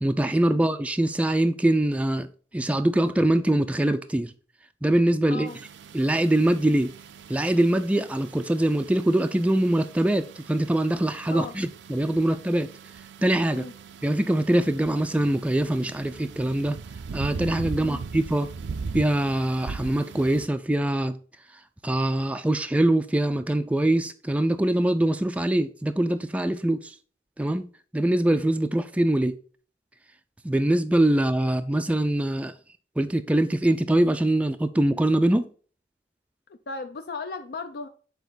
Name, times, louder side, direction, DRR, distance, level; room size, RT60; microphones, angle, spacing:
voice 1, 0.0-2.3 2.5-4.3 4.8-5.5 5.9-6.9 7.3-12.7 13.2-13.6 14.0-16.8 17.1-18.5 18.9-21.2 21.8-26.9 27.4-27.7 27.9-29.4 30.4-32.5 33.0-35.5, right 1 dB, 10° right, 0.3 m, -23 dB
voice 2, 5.3-5.6 11.3-11.5 13.5-13.7 17.8-18.0 36.7-37.9, left 3 dB, 60° left, 0.5 m, -36 dB
sound 1, 5.5-20.5, right 5 dB, 80° right, 0.4 m, -40 dB
7.1 x 4.1 x 4.0 m
head